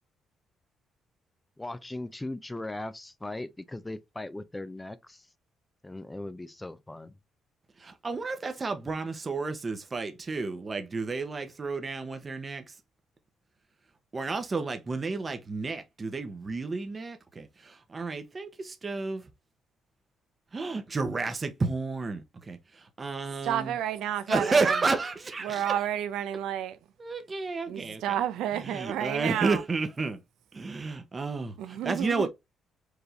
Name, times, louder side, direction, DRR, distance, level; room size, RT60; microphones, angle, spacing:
voice 1, 1.6-5.3 5.8-7.1, left 2 dB, 15° left, 0.5 m, -38 dB
voice 2, 8.0-12.7 14.1-19.2 20.5-23.7 24.3-25.7 27.0-28.2 28.6-30.2 30.5-32.3, right 3 dB, 30° right, 0.8 m, -31 dB
voice 3, 23.4-24.8 25.4-26.8 27.7-29.6 31.6-32.3, right 11 dB, 85° right, 0.6 m, -31 dB
4.8 x 2.6 x 3.2 m
cardioid pair, 90°, 0 cm